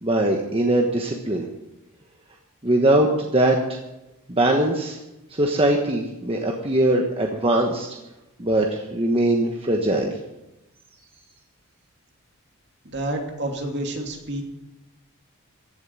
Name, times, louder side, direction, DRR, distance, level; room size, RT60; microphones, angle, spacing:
voice 1, 0.0-1.5 2.6-3.8 4.3-5.0 5.3-7.9 8.4-10.1, right 1 dB, 25° right, 1 dB, 1.2 m, -21 dB
voice 2, 12.8-14.4, right 1 dB, 50° right, 1 dB, 2.8 m, -29 dB
15.5 x 7.6 x 9.4 m, 0.95 s
head